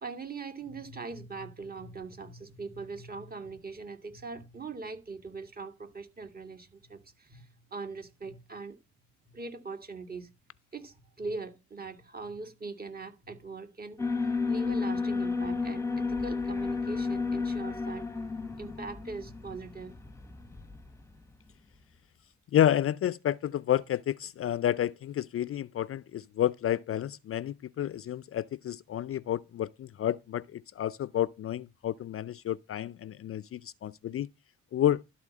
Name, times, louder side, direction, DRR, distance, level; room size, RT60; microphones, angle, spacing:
voice 1, 0.0-8.8 9.3-10.3 10.7-18.1 18.6-20.0, right 4 dB, 30° right, 2.0 m, -41 dB
Alarm, 14.0-21.1, left 4 dB, 10° left, 1.0 m, -32 dB
voice 2, 22.5-34.3 34.7-35.0, left 11 dB, 50° left, 0.5 m, -30 dB
12.5 x 4.2 x 7.2 m
cardioid pair, 90°, 30 cm